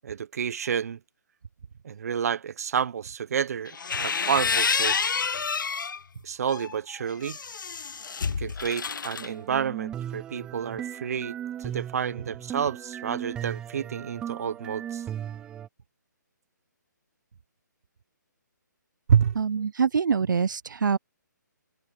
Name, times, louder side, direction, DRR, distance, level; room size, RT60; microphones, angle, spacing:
voice 1, 0.0-1.0 1.8-5.1 6.2-7.4 8.4-15.0 19.1-19.4, right 8 dB, 50° right, 1.0 m, -29 dB
sound 1, 3.7-6.0 6.5-9.3, left 5 dB, 85° left, 0.7 m, -28 dB
sound 2, 9.2-15.7, right 10 dB, 5° right, 0.4 m, -37 dB
voice 2, 19.4-21.0, right 6 dB, 80° right, 0.6 m, -25 dB
hypercardioid pair, 165°, 10 cm